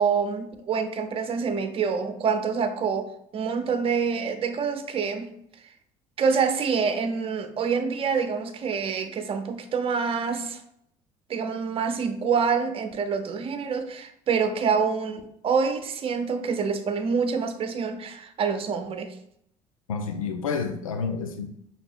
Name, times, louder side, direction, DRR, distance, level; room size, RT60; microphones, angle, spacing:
voice 1, 0.0-3.1 3.3-5.3 6.2-10.6 11.3-19.1, right 5 dB, 35° right, 8 dB, 0.6 m, -26 dB
voice 2, 19.9-21.8, left 5 dB, 80° left, 6 dB, 0.4 m, -30 dB
5.7 x 2.4 x 3.4 m, 0.73 s
figure-of-eight pair, 60°, 17 cm